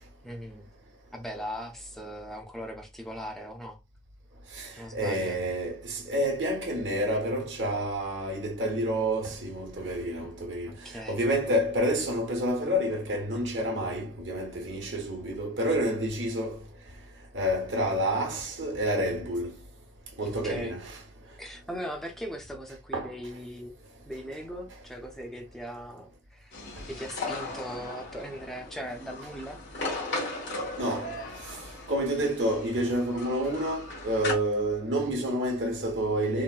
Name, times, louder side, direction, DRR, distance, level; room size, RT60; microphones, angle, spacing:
voice 1, 0.2-0.7 1.1-3.8 4.8-5.4 10.7-11.2 20.2-20.7 21.4-23.7 24.1-29.6, equal, ahead, 0.5 m, -39 dB
voice 2, 4.5-10.7 11.1-16.6 17.3-19.6 20.2-21.0 22.9-23.1 30.8-31.1 31.9-36.4, right 1 dB, 85° right, 1.1 m, -29 dB
sound 1, 26.5-34.3, left 2 dB, 80° left, 1.4 m, -37 dB
3.7 x 2.1 x 2.3 m
head